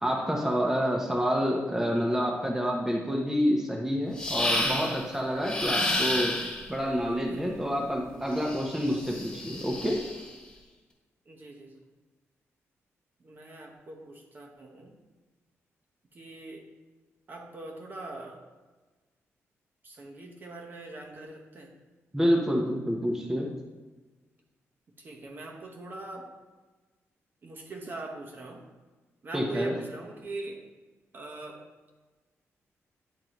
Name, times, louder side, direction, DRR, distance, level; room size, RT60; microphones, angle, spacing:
voice 1, 0.0-10.0 22.1-23.5 29.3-29.7, equal, 10° right, -1 dB, 0.7 m, -28 dB
sound 1, 4.2-5.0 5.4-6.7 8.4-10.3, left 1 dB, 15° left, 1.6 m, -30 dB
voice 2, 11.3-11.8 13.2-15.0 16.1-16.6 17.3-18.4 19.8-21.8 25.0-26.3 27.4-28.7 29.2-30.7 31.1-31.6, right 2 dB, 40° right, 1 dB, 0.9 m, -41 dB
9.1 x 3.8 x 2.9 m, 1.3 s
wide cardioid pair, 125°, 5 cm